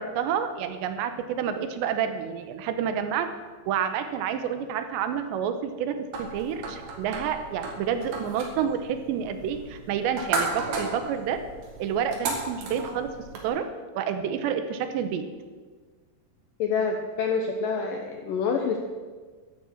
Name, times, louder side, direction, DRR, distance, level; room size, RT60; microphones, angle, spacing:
voice 1, 0.0-3.3 3.7-11.4 11.8-13.1 13.4-13.7 13.9-15.2, right 8 dB, 80° right, 9 dB, 3.1 m, -29 dB
sound 1, 6.1-13.5, right 3 dB, 65° right, 4.0 m, -35 dB
voice 2, 16.6-18.8, left 5 dB, 80° left, 3 dB, 2.0 m, -27 dB
14.0 x 11.0 x 6.1 m, 1.4 s
omnidirectional pair, 5.2 m